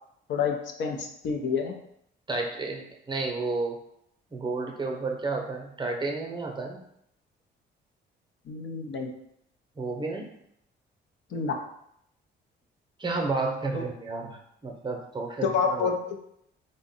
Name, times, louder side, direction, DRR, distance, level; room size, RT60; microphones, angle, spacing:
voice 1, 0.3-1.7 8.5-9.1 11.3-11.6 13.7-13.8 15.4-16.0, left 5 dB, 70° left, 2 dB, 0.6 m, -28 dB
voice 2, 2.3-3.8 4.3-6.8 9.8-10.3 13.0-15.9, right 3 dB, 25° right, 1 dB, 0.7 m, -31 dB
3.7 x 2.1 x 3.8 m, 0.75 s
cardioid pair, 90°, 20 cm